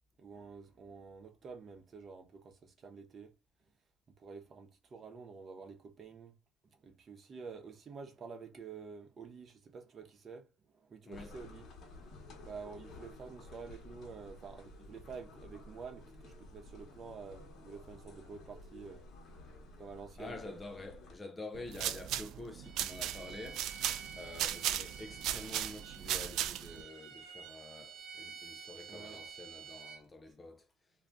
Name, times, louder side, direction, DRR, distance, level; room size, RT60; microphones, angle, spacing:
voice 1, 0.2-3.3 4.2-6.4 6.8-12.1 12.4-19.1 19.8-20.6 28.9-29.2, right 5 dB, 35° right, 0.8 m, -49 dB
sound 1, 11.1-21.2, left 2 dB, 45° left, 1.0 m, -53 dB
voice 2, 20.2-30.7, left 2 dB, 20° left, 0.4 m, -48 dB
sound 2, 21.5-26.8, right 11 dB, 60° right, 0.3 m, -36 dB
Bowed string instrument, 22.6-30.0, right 6 dB, 90° right, 0.9 m, -50 dB
2.5 x 2.2 x 3.5 m
cardioid pair, 115°, 0 cm